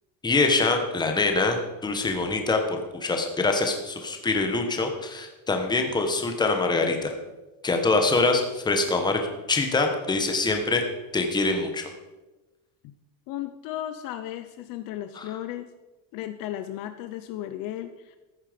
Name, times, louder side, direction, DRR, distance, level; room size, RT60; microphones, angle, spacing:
voice 1, 0.2-7.1 7.6-9.2 9.5-10.8 11.1-11.9 15.2-15.3, left 3 dB, 10° left, 4 dB, 1.2 m, -24 dB
voice 2, 13.3-15.7 16.1-18.2, left 12 dB, 50° left, 10 dB, 0.7 m, -35 dB
14.0 x 9.8 x 5.1 m, 1.1 s
cardioid pair, 175°, 44 cm